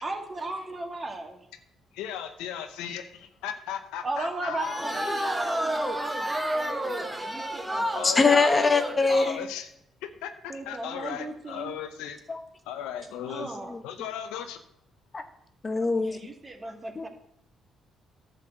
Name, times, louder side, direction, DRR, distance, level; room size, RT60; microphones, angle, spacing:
voice 1, 0.0-1.5 4.0-8.3 10.5-11.8 13.3-13.8 16.0-17.1, right 2 dB, 30° right, 4 dB, 1.9 m, -37 dB
voice 2, 1.9-5.3 7.9-8.4 9.1-9.7 10.0-12.2 12.7-14.6, left 9 dB, 85° left, 8 dB, 0.8 m, -37 dB
sound 1, 4.6-9.4, right 1 dB, 10° right, 1.6 m, -30 dB
voice 3, 8.0-9.4 12.3-12.4 13.7-13.8 15.1-15.2 15.6-16.2 17.0-17.1, left 4 dB, 35° left, 8 dB, 1.1 m, -22 dB
10.5 x 4.2 x 7.6 m, 0.75 s
supercardioid pair, 60°, 0 cm